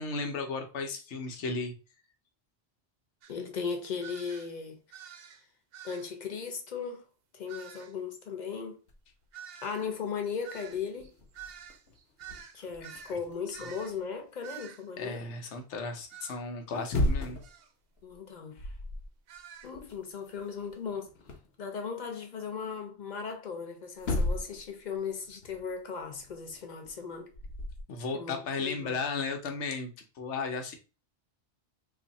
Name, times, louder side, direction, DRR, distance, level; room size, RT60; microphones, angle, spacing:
voice 1, 0.0-1.7 13.1-13.2 13.5-13.6 15.0-17.4 27.9-30.7, left 4 dB, 90° left, 1.1 m, -35 dB
sound 1, 3.2-3.4 4.0-4.5 4.9-5.4 5.7-6.1 7.5-7.9 9.3-13.2 13.5-14.0 14.4-14.9 16.1-16.4 17.4-17.7 19.3-19.7, right 9 dB, 65° right, 0.7 m, -48 dB
voice 2, 3.3-4.8 5.8-7.1 7.3-8.8 9.6-11.1 12.5-15.2 18.0-18.7 19.6-21.1 21.6-27.3 28.1-29.0, left 6 dB, 45° left, 0.8 m, -37 dB
sound 2, 8.9-9.2 9.9-10.0 10.2-14.5 16.6-17.6 18.0-18.2 18.5-19.1 19.4-21.6 23.5-23.6 24.0-24.7 24.9-27.8, left 1 dB, 65° left, 1.0 m, -36 dB
2.8 x 2.6 x 3.9 m
omnidirectional pair, 1.2 m